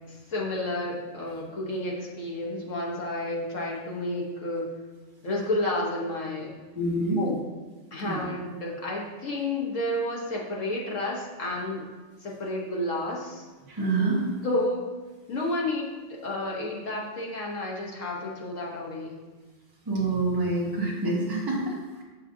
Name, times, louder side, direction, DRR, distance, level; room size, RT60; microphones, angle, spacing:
voice 1, 0.1-4.7 5.2-6.6 7.2-7.4 7.9-11.9 12.2-13.5 14.4-14.9 15.3-19.1, left 1 dB, 85° left, -3 dB, 1.5 m, -31 dB
voice 2, 6.7-7.2 8.0-8.2 13.7-14.3 19.9-21.8, right 2 dB, 20° right, -4 dB, 1.2 m, -26 dB
7.2 x 5.5 x 2.7 m, 1.3 s
omnidirectional pair, 1.3 m